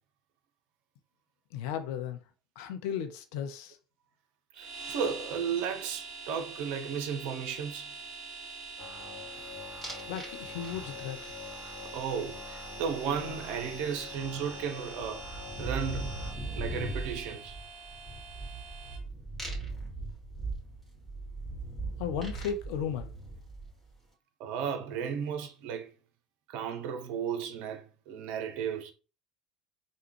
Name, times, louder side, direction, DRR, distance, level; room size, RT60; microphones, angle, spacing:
voice 1, 1.5-2.2 2.6-3.8 10.1-11.3 22.0-23.1, left 8 dB, 60° left, 0.5 m, -35 dB
sound 1, 4.5-19.0, right 4 dB, 25° right, 1.8 m, -45 dB
voice 2, 4.5-7.9 11.9-15.2 15.6-16.2 16.6-17.6 24.4-25.9 26.5-28.9, right 7 dB, 55° right, 0.5 m, -34 dB
sound 2, 8.8-16.3, left 5 dB, 30° left, 0.9 m, -46 dB
sound 3, 9.8-10.3 10.6-11.1 13.5-13.6 13.9-23.9, right 2 dB, 5° left, 1.9 m, -39 dB
3.4 x 2.2 x 3.0 m
figure-of-eight pair, 65°, 3 cm